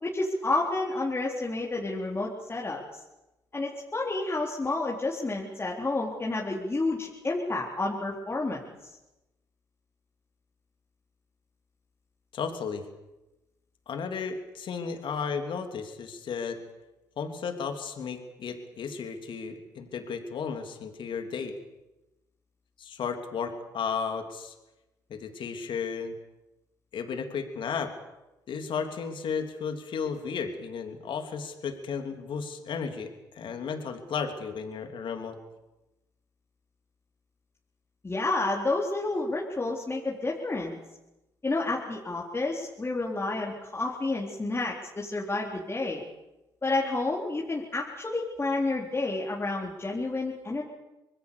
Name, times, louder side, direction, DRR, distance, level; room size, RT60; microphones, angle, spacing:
voice 1, 0.0-2.8 3.5-8.6 38.0-40.8 41.4-46.0 46.6-50.6, left 2 dB, 25° left, -2 dB, 3.9 m, -30 dB
voice 2, 12.3-12.8 13.9-16.6 17.2-21.5 22.8-24.5 25.1-26.1 26.9-27.9 28.5-33.1 33.3-35.4, left 6 dB, 60° left, 6 dB, 3.3 m, -34 dB
26.0 x 20.5 x 7.0 m, 0.99 s
supercardioid pair, 55°, 9 cm